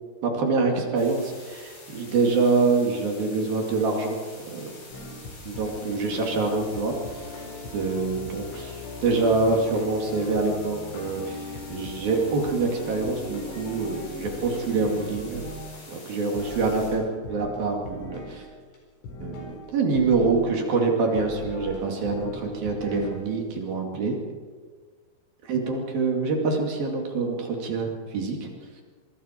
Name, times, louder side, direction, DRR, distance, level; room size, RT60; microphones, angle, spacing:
voice 1, 0.2-4.2 4.4-4.7 5.4-7.2 7.7-15.4 15.9-18.5 19.2-24.2 25.4-28.5, right 3 dB, 55° right, 1 dB, 3.9 m, -25 dB
sound 1, 1.0-16.9, left 2 dB, 60° left, 8.5 m, -47 dB
sound 2, 4.9-15.8 16.3-18.4 18.7-18.8 19.0-19.6 19.9-20.6 21.1-23.2 23.5-23.6, left 1 dB, 75° left, 6.9 m, -39 dB
25.0 x 23.5 x 4.6 m, 1.5 s
omnidirectional pair, 5.6 m